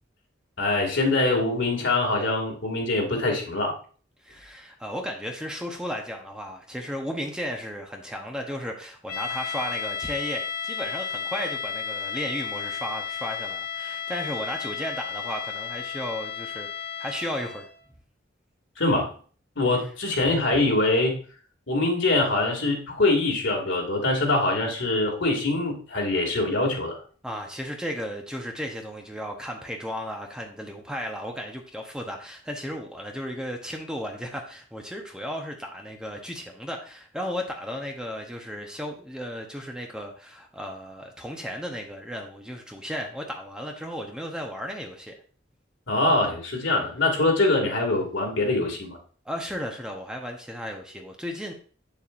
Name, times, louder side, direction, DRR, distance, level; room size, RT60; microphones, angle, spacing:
voice 1, 0.6-3.7 18.8-19.1 19.6-21.2 21.7-27.0 45.9-49.0, left 2 dB, 75° left, 0 dB, 2.2 m, -24 dB
voice 2, 4.2-16.7 17.0-17.7 27.2-45.1 49.2-51.5, equal, 5° right, 2 dB, 0.9 m, -34 dB
sound 1, 9.1-17.8, left 7 dB, 55° left, 2.0 m, -33 dB
8.0 x 7.0 x 2.5 m, 0.41 s
head